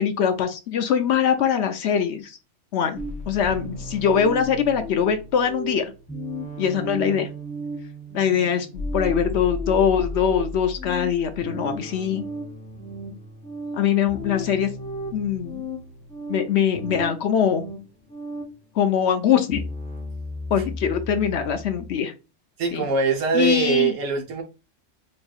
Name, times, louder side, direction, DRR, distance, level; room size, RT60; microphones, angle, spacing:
voice 1, 0.0-2.4 2.7-3.0 3.3-5.9 6.6-7.3 8.1-12.3 13.7-14.7 15.1-15.6 16.3-17.6 18.8-19.6 20.5-22.1 22.7-22.8 23.3-23.9, left 8 dB, 65° left, 0.8 m, -22 dB
sound 1, 2.9-18.6 19.5-21.9, equal, 10° left, 0.4 m, -34 dB
voice 2, 22.6-24.4, right 5 dB, 75° right, 1.3 m, -22 dB
5.3 x 2.6 x 2.4 m
omnidirectional pair, 1.3 m